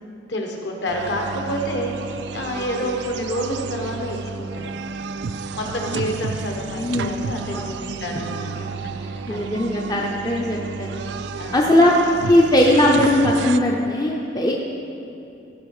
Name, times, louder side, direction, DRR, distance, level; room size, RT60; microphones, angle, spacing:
voice 1, 0.3-4.7 5.5-9.8 11.4-11.8, equal, 60° left, 1 dB, 1.3 m, -29 dB
sound 1, 0.9-13.6, right 5 dB, 60° right, 0.3 m, -31 dB
voice 2, 5.7-6.1 6.8-7.2 7.5-7.9 9.3-11.0 11.5-11.9 12.2-14.5, left 1 dB, 20° left, -2 dB, 0.6 m, -19 dB
15.0 x 5.5 x 4.9 m, 2.7 s
head